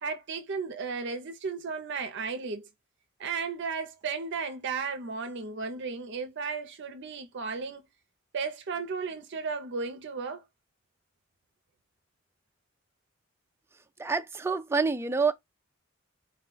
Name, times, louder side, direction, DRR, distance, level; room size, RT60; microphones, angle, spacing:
voice 1, 0.0-2.7 3.2-7.8 8.3-10.4, right 5 dB, 60° right, 0.6 m, -34 dB
voice 2, 14.0-15.3, right 4 dB, 10° right, 0.3 m, -27 dB
4.1 x 2.2 x 3.7 m
head